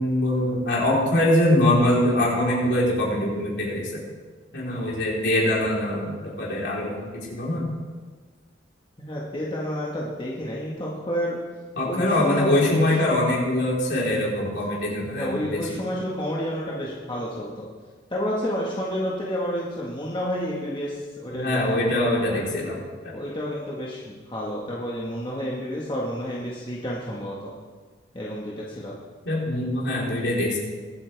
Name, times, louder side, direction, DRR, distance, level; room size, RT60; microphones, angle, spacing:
voice 1, 0.0-4.0 4.5-7.6 11.8-15.7 21.3-22.8 23.0-23.1 29.2-30.6, left 1 dB, 60° left, -4 dB, 4.0 m, -23 dB
voice 2, 9.0-11.4 11.8-12.9 15.0-17.7 18.1-21.6 22.3-22.4 23.1-27.5 28.1-28.9 30.1-30.2, equal, 25° left, -5 dB, 1.6 m, -30 dB
23.0 x 8.7 x 3.5 m, 1.4 s
head